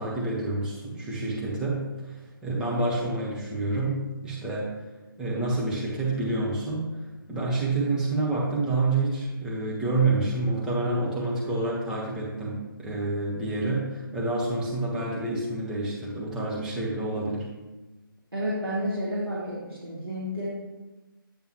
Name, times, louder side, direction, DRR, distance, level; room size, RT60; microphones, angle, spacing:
voice 1, 0.0-4.0 4.2-4.7 5.2-6.8 7.3-17.5, right 2 dB, 5° right, -6 dB, 1.0 m, -28 dB
voice 2, 18.3-20.5, equal, 85° right, -7 dB, 2.1 m, -30 dB
9.0 x 5.3 x 3.0 m, 1.1 s
figure-of-eight pair, 150°, 12 cm